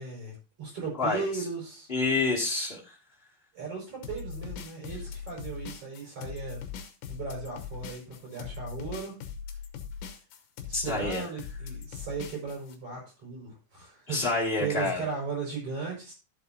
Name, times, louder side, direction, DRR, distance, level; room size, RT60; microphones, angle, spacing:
voice 1, 0.0-1.9 3.5-6.6 7.1-9.2 10.7-16.1, right 5 dB, 35° right, -1 dB, 6.1 m, -37 dB
voice 2, 1.9-3.0 10.7-11.3 14.1-15.0, left 3 dB, 30° left, -3 dB, 1.1 m, -28 dB
sound 1, 4.0-12.8, left 7 dB, 65° left, 2.3 m, -40 dB
14.0 x 7.7 x 2.7 m, 0.30 s
omnidirectional pair, 4.8 m